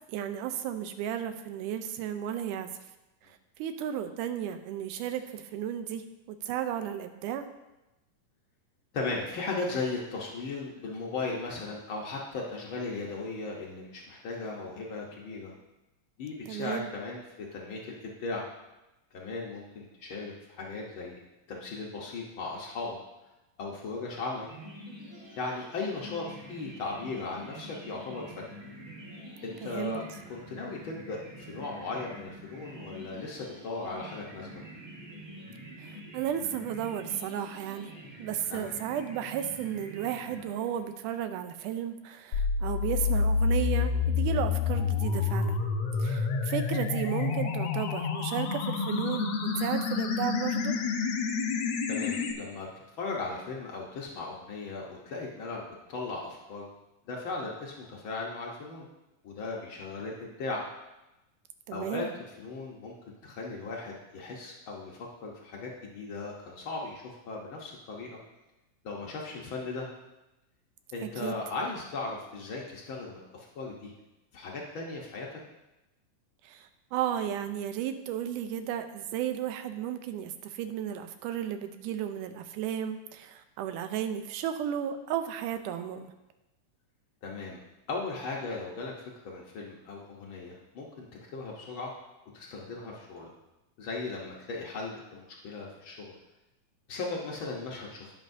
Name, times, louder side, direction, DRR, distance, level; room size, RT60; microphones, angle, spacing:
voice 1, 0.1-2.7 3.3-7.5 16.5-16.9 29.6-30.0 35.8-37.9 38.2-45.6 46.0-50.8 61.7-62.1 71.2-71.4 76.4-86.1, right 10 dB, 80° right, 9 dB, 2.1 m, -34 dB
voice 2, 8.9-15.5 16.2-18.4 19.1-21.2 21.5-23.0 23.6-24.5 25.4-28.5 29.4-30.0 30.3-34.6 38.5-38.8 51.9-52.7 53.0-56.7 57.1-58.9 59.2-60.6 61.7-62.1 62.4-63.0 63.2-68.2 68.8-69.9 70.9-73.9 74.3-75.4 87.2-87.6 87.9-88.9 89.2-91.1 91.3-91.9 92.3-93.3 93.8-96.1 96.9-98.1, left 3 dB, 85° left, -2 dB, 1.1 m, -37 dB
sound 1, 24.4-41.0, equal, 45° right, 1.1 m, -46 dB
sound 2, 42.3-52.3, left 5 dB, 65° left, 1.7 m, -28 dB
17.0 x 6.6 x 2.7 m, 0.99 s
omnidirectional pair, 3.9 m